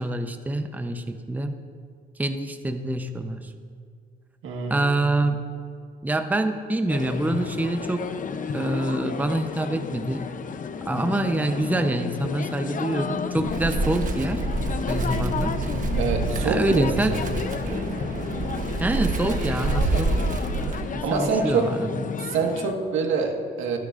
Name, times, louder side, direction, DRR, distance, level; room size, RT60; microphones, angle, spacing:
voice 1, 0.0-1.5 2.2-3.5 4.7-5.4 6.0-8.1 8.5-10.3 10.9-14.5 14.9-15.6 16.4-17.2 18.8-20.1 20.5-22.0, right 2 dB, 10° right, 7 dB, 0.7 m, -26 dB
voice 2, 4.4-4.9 16.0-17.2 21.0-21.7 22.2-23.8, right 5 dB, 85° right, 2 dB, 1.6 m, -25 dB
sound 1, 6.9-22.7, left 6 dB, 40° left, 0.7 m, -32 dB
Wind, 13.4-21.1, right 3 dB, 40° right, 1.3 m, -28 dB
25.5 x 9.9 x 2.5 m, 2.1 s
cardioid pair, 90°, 20 cm